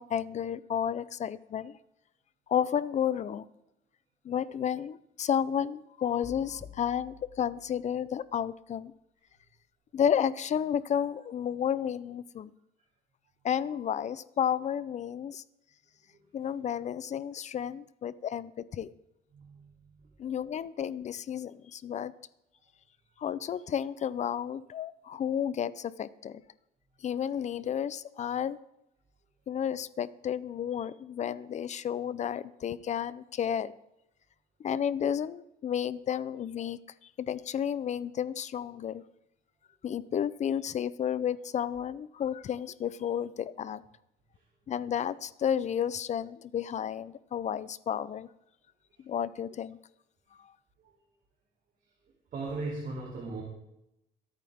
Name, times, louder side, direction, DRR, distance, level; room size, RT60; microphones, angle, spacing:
voice 1, 0.0-1.8 2.5-3.5 4.2-8.9 9.9-12.5 13.4-15.4 16.3-18.9 20.2-22.1 23.2-26.4 27.0-28.6 29.5-33.8 34.6-36.8 37.2-39.0 39.8-43.8 44.7-48.3 49.0-49.8 50.4-50.5, left 9 dB, 45° left, 17 dB, 0.7 m, -32 dB
sound 1, 6.2-8.3, left 5 dB, 10° left, 1.6 m, -51 dB
voice 2, 19.3-20.0 44.3-44.4 50.8-51.0 52.3-53.4, right 3 dB, 50° right, -3 dB, 3.2 m, -38 dB
24.0 x 9.0 x 3.6 m, 0.84 s
cardioid pair, 110°, 17 cm